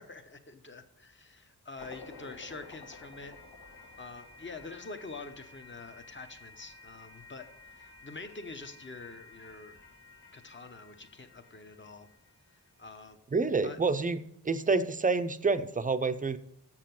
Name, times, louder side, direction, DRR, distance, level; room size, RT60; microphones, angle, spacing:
voice 1, 0.0-3.3 4.0-9.8 10.3-12.1 12.8-13.2 13.6-13.8, left 3 dB, 30° left, 8 dB, 0.8 m, -46 dB
sound 1, 1.8-12.9, left 3 dB, 85° left, 1.5 m, -53 dB
voice 2, 13.3-14.2 14.4-16.4, right 4 dB, 20° right, 11 dB, 0.5 m, -28 dB
7.4 x 6.8 x 5.8 m, 0.75 s
wide cardioid pair, 105°, 40 cm